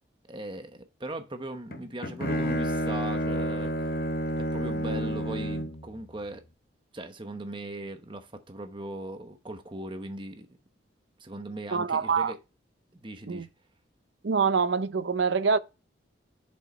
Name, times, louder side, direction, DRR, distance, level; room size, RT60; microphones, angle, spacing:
voice 1, 0.2-4.0 4.4-6.4 6.9-10.5 11.2-12.4 12.9-13.5, right 1 dB, 25° right, 1.0 m, -39 dB
Bowed string instrument, 1.7-5.9, equal, 50° left, 0.9 m, -30 dB
voice 2, 11.7-12.3 13.3-13.5 14.2-15.6, right 5 dB, 70° right, 0.6 m, -25 dB
6.8 x 5.5 x 4.3 m
head